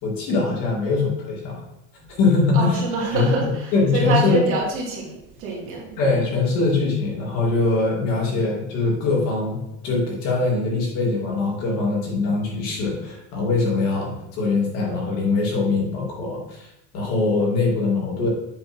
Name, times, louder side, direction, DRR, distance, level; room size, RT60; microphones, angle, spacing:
voice 1, 0.0-1.6 2.2-2.8 3.1-3.5 3.7-4.4 6.0-9.6 9.8-18.3, left 3 dB, 45° left, -2 dB, 2.3 m, -22 dB
voice 2, 2.5-5.9, right 3 dB, 40° right, -2 dB, 2.2 m, -26 dB
7.8 x 3.5 x 5.7 m, 0.85 s
cardioid pair, 180°, 34 cm